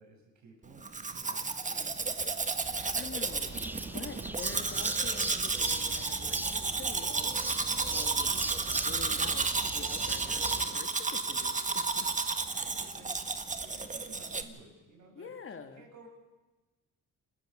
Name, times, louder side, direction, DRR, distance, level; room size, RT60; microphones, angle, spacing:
voice 1, 0.0-2.2 4.1-5.0 12.5-16.1, right 3 dB, 70° right, 0 dB, 7.6 m, -55 dB
Domestic sounds home sounds, 0.8-14.4, right 4 dB, 25° right, 1.5 m, -32 dB
Insect / Frog, 2.6-10.7, right 5 dB, 40° right, 1.5 m, -47 dB
voice 2, 2.7-8.4 8.7-12.1 12.5-12.7 15.2-15.9, left 6 dB, 45° left, 7 dB, 2.3 m, -47 dB
sound 1, 3.5-10.8, right 1 dB, 5° right, 0.8 m, -41 dB
27.5 x 14.5 x 6.9 m, 1.2 s
cardioid pair, 90°, 30 cm